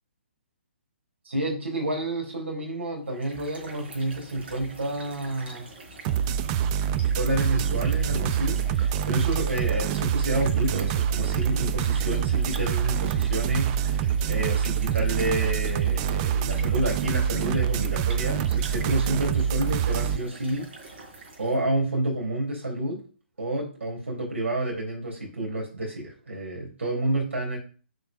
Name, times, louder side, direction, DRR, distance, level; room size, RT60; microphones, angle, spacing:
voice 1, 1.2-5.7 7.1-14.0 14.3-20.7 21.4-23.0 23.4-27.6, right 1 dB, 75° right, -1 dB, 4.3 m, -29 dB
sound 1, 3.0-21.7, right 2 dB, 55° right, 4.5 m, -45 dB
sound 2, 6.0-20.2, right 9 dB, 30° right, 0.5 m, -26 dB
7.7 x 6.4 x 5.4 m, 0.38 s
figure-of-eight pair, 135°, 7 cm